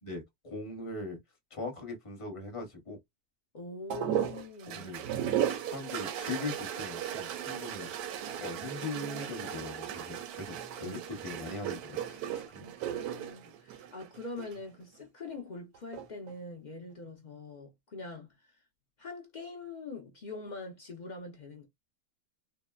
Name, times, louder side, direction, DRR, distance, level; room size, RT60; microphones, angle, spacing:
voice 1, 0.0-1.2 1.5-3.0 4.7-5.3 5.7-7.9 8.4-10.5 10.8-12.7, left 2 dB, 25° left, 0.8 m, -40 dB
voice 2, 3.5-5.0 10.8-11.0 12.6-18.4 19.0-21.7, left 3 dB, 60° left, 0.4 m, -44 dB
sound 1, 3.9-14.6 15.7-16.3, right 10 dB, 85° right, 1.1 m, -36 dB
3.6 x 2.0 x 2.3 m
omnidirectional pair, 1.6 m